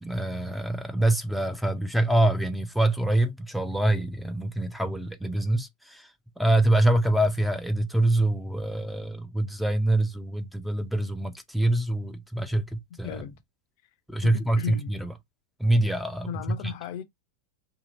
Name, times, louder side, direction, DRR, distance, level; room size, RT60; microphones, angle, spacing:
voice 1, 0.0-6.1 6.4-13.2 14.1-15.1 15.6-16.3 16.6-16.7, right 1 dB, ahead, 0.5 m, -25 dB
voice 2, 13.0-13.4 14.2-14.9 16.3-17.0, left 9 dB, 45° left, 0.5 m, -35 dB
2.8 x 2.7 x 3.8 m
figure-of-eight pair, 90°, 0 cm